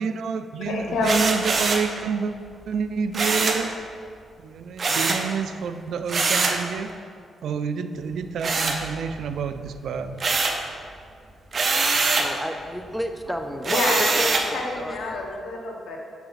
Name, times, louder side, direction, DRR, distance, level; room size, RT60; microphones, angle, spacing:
voice 1, 0.0-2.3 2.7-3.8 4.4-6.9 7.4-10.3, right 6 dB, 75° right, 9 dB, 0.3 m, -28 dB
voice 2, 0.6-1.3 13.6-16.0, left 2 dB, 85° left, 0 dB, 1.0 m, -27 dB
sound 1, 1.0-1.9 3.1-3.7 4.8-5.3 6.1-6.6 8.4-9.3 9.7-10.7 11.5-12.3 13.6-14.5, right 3 dB, 40° right, 0.6 m, -23 dB
voice 3, 12.2-15.0, equal, ahead, 5 dB, 0.5 m, -31 dB
6.9 x 4.9 x 4.0 m, 2.3 s
cardioid pair, 115°, 0 cm